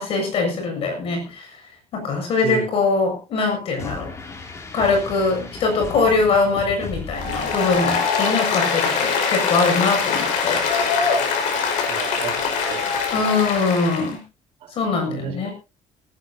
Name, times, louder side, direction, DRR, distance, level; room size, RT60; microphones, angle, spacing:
voice 1, 0.0-1.6 1.9-4.1 4.7-10.7 13.1-14.2 14.7-15.5, left 4 dB, 50° left, 4 dB, 7.2 m, -22 dB
voice 2, 2.4-2.8 11.9-12.9 14.6-14.7 15.1-15.5, right 6 dB, 55° right, 5 dB, 4.1 m, -32 dB
sound 1, 3.8-8.1, left 4 dB, 25° left, 2.7 m, -35 dB
Applause, 7.1-14.1, left 5 dB, 90° left, 5.1 m, -23 dB
18.5 x 15.5 x 2.8 m, 0.29 s
cardioid pair, 165°, 12 cm